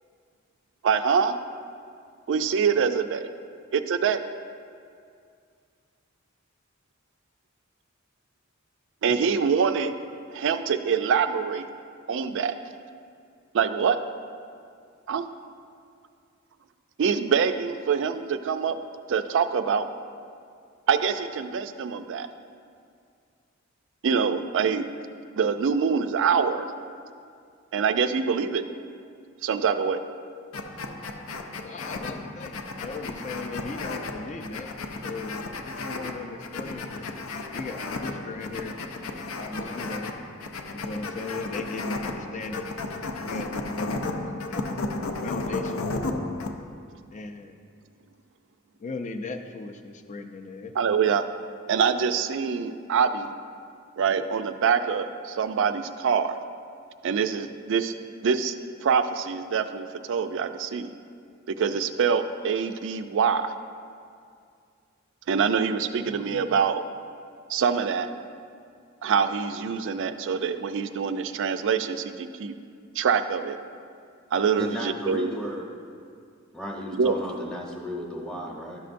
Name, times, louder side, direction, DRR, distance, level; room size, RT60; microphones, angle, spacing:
voice 1, 0.8-1.4 2.3-3.3 3.7-4.2 9.0-9.9 10.3-11.7 12.1-12.5 13.5-14.0 15.1-15.2 17.0-18.8 19.1-19.9 20.9-22.3 24.0-24.8 25.4-26.7 27.7-28.6 29.4-30.0 50.8-51.3 51.7-53.3 54.0-56.3 57.0-57.9 58.2-58.5 58.8-60.9 61.6-63.5 65.3-66.8 67.5-68.1 69.0-72.5 73.0-73.6 74.3-75.4 77.0-77.2, right 6 dB, 65° right, 9 dB, 0.4 m, -25 dB
sound 1, 30.5-46.5, left 3 dB, 85° left, 0.5 m, -34 dB
voice 2, 31.6-34.7 35.0-37.1 37.5-38.8 39.4-40.1 40.7-42.7 43.2-44.8 45.2-45.9 47.1-47.6 48.8-50.7, left 3 dB, 35° left, 6 dB, 0.4 m, -38 dB
voice 3, 74.6-75.7 76.5-78.8, equal, 5° left, -2 dB, 0.8 m, -34 dB
11.5 x 6.3 x 2.6 m, 2.3 s
head